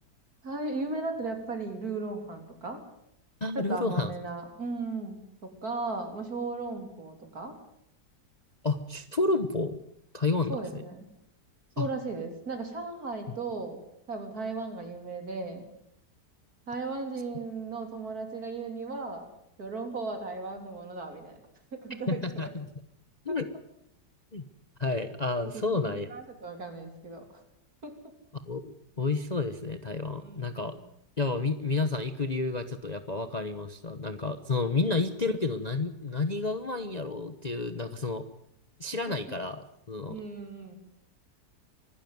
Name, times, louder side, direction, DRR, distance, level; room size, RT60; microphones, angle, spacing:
voice 1, 0.4-2.8 3.5-7.6 10.5-11.1 11.8-13.8 14.1-15.6 16.7-19.3 19.6-21.4 21.8-22.5 23.3-23.4 25.5-27.3 27.8-27.9 30.2-30.4 30.7-30.8 39.1-39.2 40.1-40.8, right 3 dB, 60° right, 5 dB, 3.9 m, -36 dB
voice 2, 3.4-4.1 8.6-9.8 10.1-10.8 11.8-11.9 22.1-22.7 23.2-23.5 24.3-24.4 24.8-26.1 28.3-30.8 31.2-38.2 38.8-40.2, left 3 dB, 30° left, 10 dB, 0.9 m, -30 dB
24.5 x 12.5 x 9.4 m, 0.77 s
omnidirectional pair, 1.8 m